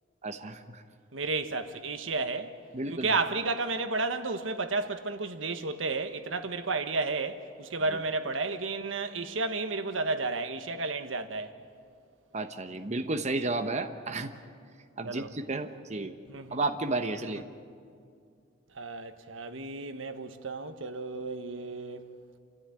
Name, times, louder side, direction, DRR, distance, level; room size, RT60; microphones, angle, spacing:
voice 1, 0.2-0.8 2.7-3.1 7.9-8.0 12.3-14.3 15.0-16.1 16.5-17.4, right 2 dB, 35° right, 1.0 m, -32 dB
voice 2, 1.1-2.5 2.9-11.5 15.0-15.3 16.3-16.6 18.7-22.1, right 3 dB, 80° right, 1.4 m, -32 dB
28.5 x 14.0 x 9.8 m
head